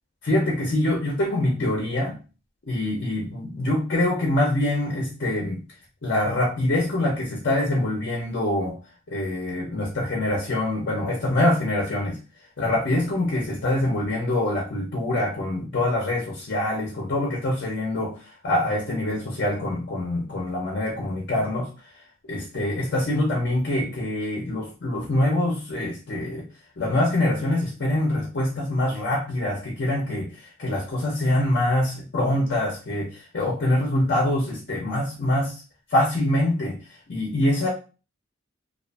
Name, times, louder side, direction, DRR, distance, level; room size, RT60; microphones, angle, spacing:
voice 1, 0.2-2.2 2.7-5.6 6.0-8.8 9.1-12.2 12.6-21.7 22.3-26.5 26.8-35.6 35.9-36.8 37.1-37.7, left 1 dB, 55° left, -2 dB, 0.6 m, -24 dB
2.5 x 2.3 x 2.3 m, 0.33 s
head